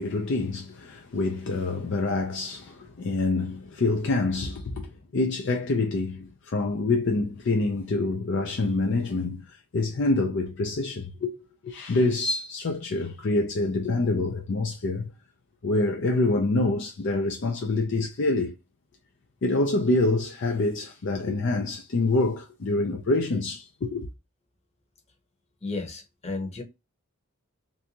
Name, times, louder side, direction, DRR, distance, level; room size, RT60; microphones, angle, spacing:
voice 1, 0.0-11.3 11.6-15.1 15.6-18.5 19.4-24.1, left 2 dB, 55° left, 0.5 m, -26 dB
voice 2, 25.6-26.6, left 3 dB, 30° left, 0.9 m, -33 dB
3.4 x 2.6 x 2.8 m
head